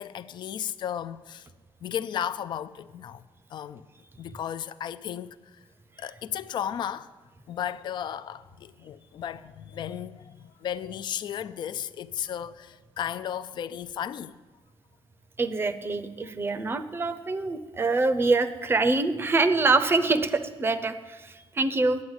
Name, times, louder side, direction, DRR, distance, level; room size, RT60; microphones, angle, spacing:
voice 1, 0.0-1.5 1.8-3.2 3.5-3.8 4.2-5.4 6.0-7.1 7.5-14.4, left 9 dB, 50° left, 0.4 m, -34 dB
voice 2, 15.4-22.0, right 3 dB, 25° right, 0.6 m, -25 dB
9.5 x 8.5 x 7.9 m
cardioid pair, 145°, 10 cm